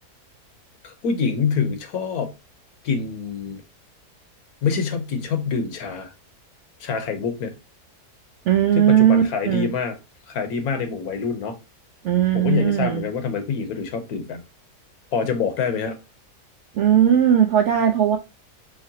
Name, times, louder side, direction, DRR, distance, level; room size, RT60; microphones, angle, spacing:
voice 1, 0.8-2.3 2.8-3.6 4.6-6.1 6.8-7.5 8.8-10.0 10.3-11.6 12.3-14.4 15.1-16.0, left 5 dB, 70° left, 1.3 m, -25 dB
voice 2, 8.5-9.7 12.0-13.0 16.7-18.2, right 9 dB, 70° right, 0.7 m, -18 dB
4.6 x 3.3 x 2.7 m
omnidirectional pair, 1.7 m